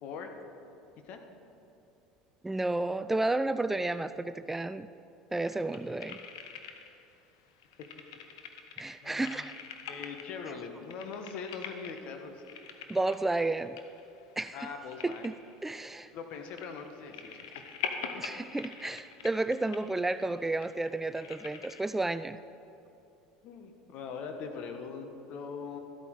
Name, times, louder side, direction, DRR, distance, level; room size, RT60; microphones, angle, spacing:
voice 1, 0.0-0.3 1.0-1.2 9.0-9.5 9.9-12.4 14.5-15.3 16.1-17.6 18.1-18.2 23.4-25.8, left 5 dB, 60° left, 5 dB, 1.3 m, -41 dB
voice 2, 2.4-4.9 5.3-6.2 8.8-9.5 12.9-13.8 14.4-14.7 15.0-15.3 15.6-16.1 18.2-22.4, right 2 dB, 10° right, 12 dB, 0.3 m, -31 dB
sound 1, 5.4-7.1 7.4-21.8, left 6 dB, 80° left, 0.8 m, -45 dB
13.0 x 8.5 x 4.8 m, 2.8 s
hypercardioid pair, 75°, 2 cm